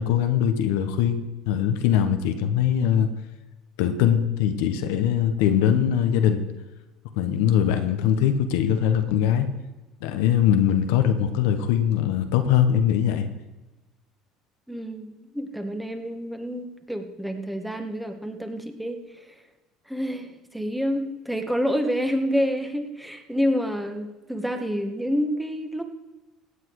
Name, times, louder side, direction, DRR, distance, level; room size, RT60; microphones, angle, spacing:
voice 1, 0.0-3.1 3.8-6.4 7.1-9.5 10.0-13.3, left 9 dB, 80° left, 8 dB, 1.2 m, -22 dB
voice 2, 14.7-19.4 19.9-25.8, equal, 5° right, 5 dB, 1.7 m, -28 dB
16.5 x 8.3 x 4.9 m, 1.1 s
supercardioid pair, 90°, 0 cm